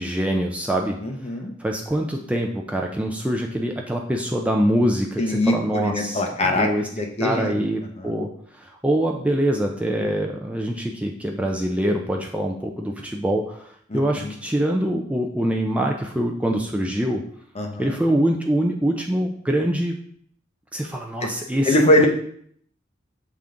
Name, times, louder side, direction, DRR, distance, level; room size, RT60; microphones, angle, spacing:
voice 1, 0.0-1.0 1.6-6.2 6.5-6.9 7.2-17.2 17.8-20.0 20.7-21.8 22.0-22.1, right 1 dB, 5° right, 1 dB, 0.4 m, -24 dB
voice 2, 1.0-1.5 5.2-6.7 6.9-7.6 8.0-8.1 13.9-14.3 17.6-18.0 21.2-21.3 21.7-22.1, left 1 dB, 35° left, 2 dB, 0.8 m, -22 dB
7.0 x 3.6 x 3.7 m, 0.64 s
head